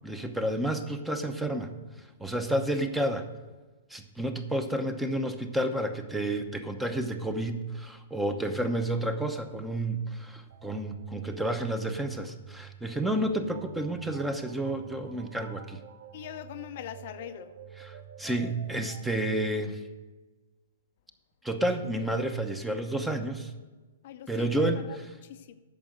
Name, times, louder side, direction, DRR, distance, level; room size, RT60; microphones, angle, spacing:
voice 1, 0.0-1.7 2.2-3.3 3.9-15.8 17.8-19.8 21.4-23.5 24.3-24.8, right 1 dB, 5° right, 7 dB, 0.9 m, -30 dB
sound 1, 10.5-19.2, right 9 dB, 55° right, 0.8 m, -48 dB
voice 2, 16.1-17.5 24.0-25.0 25.2-25.6, left 11 dB, 55° left, 9 dB, 0.6 m, -42 dB
8.9 x 6.3 x 7.8 m, 1.3 s
hypercardioid pair, 125°, 0 cm